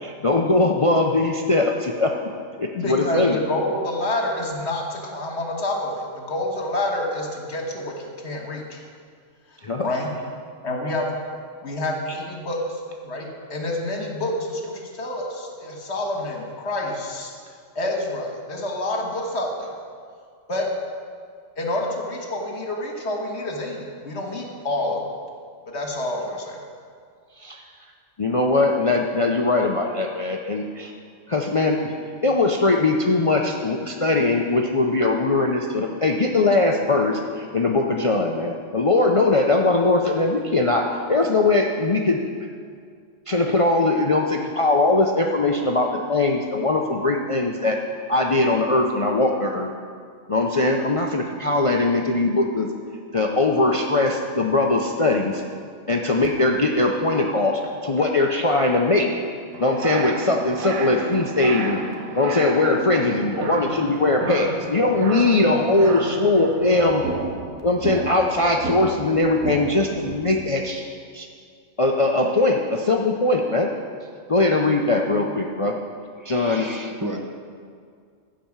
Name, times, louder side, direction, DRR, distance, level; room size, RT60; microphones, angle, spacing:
voice 1, 0.0-2.3 2.6-3.4 9.6-9.8 27.4-27.6 28.2-30.9 31.3-31.9 32.2-42.2 43.3-47.8 48.1-49.7 50.3-52.7 53.1-55.4 55.9-59.1 59.6-61.8 62.2-67.0 67.6-70.8 71.1-71.3 71.8-73.7 74.3-75.8 76.2-76.7, left 2 dB, 35° left, 2 dB, 0.5 m, -21 dB
voice 2, 2.7-8.8 9.8-10.1 10.6-11.1 11.6-17.3 17.8-19.7 20.5-20.7 21.6-25.1 25.7-26.6, left 1 dB, 55° left, 1 dB, 1.8 m, -28 dB
sound 1, 59.5-70.4, right 4 dB, 90° right, 1.5 m, -32 dB
voice 3, 76.2-77.2, right 1 dB, 15° right, 2 dB, 0.7 m, -33 dB
15.0 x 5.1 x 7.2 m, 2.2 s
omnidirectional pair, 1.4 m